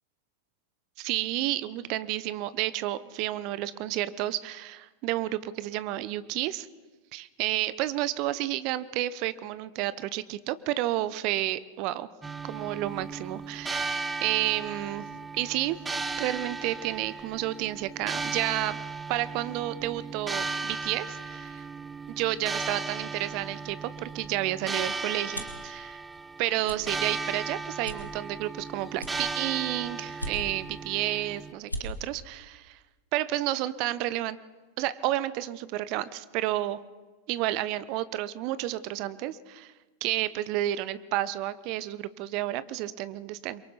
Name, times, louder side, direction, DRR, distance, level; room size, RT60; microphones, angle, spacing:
voice 1, 1.0-6.7 7.1-12.1 12.4-15.1 15.3-15.8 16.2-18.8 19.1-21.6 22.1-26.0 26.4-32.8 33.1-34.4 34.8-36.8 37.3-39.7 40.0-43.6, right 15 dB, 45° right, 16 dB, 0.9 m, -31 dB
sound 1, 12.2-31.5, right 4 dB, 10° right, 1.3 m, -36 dB
sound 2, 24.0-25.7 26.1-26.3 26.6-26.8 27.3-27.4 27.8-28.6 28.9-29.6 30.1-30.7 31.2-31.3 31.5-31.8, equal, 85° left, 2.1 m, -38 dB
28.5 x 23.0 x 4.1 m, 1.2 s
figure-of-eight pair, 90°, 0 cm